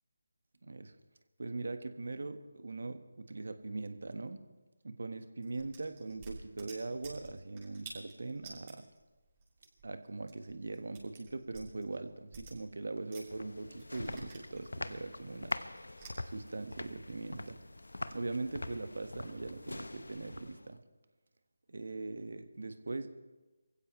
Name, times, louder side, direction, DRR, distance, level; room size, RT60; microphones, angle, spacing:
voice 1, 0.6-0.9 1.4-4.5 4.8-8.8 9.8-15.6 16.2-17.6 18.1-20.8 21.7-23.1, right 3 dB, 70° right, 9 dB, 1.4 m, -41 dB
sound 1, 5.4-13.4 13.7-16.6, right 4 dB, 25° right, 7.0 m, -52 dB
sound 2, 13.0-20.8, left 2 dB, 85° left, 0.8 m, -44 dB
27.0 x 16.0 x 3.2 m, 1.2 s
figure-of-eight pair, 160°, 0 cm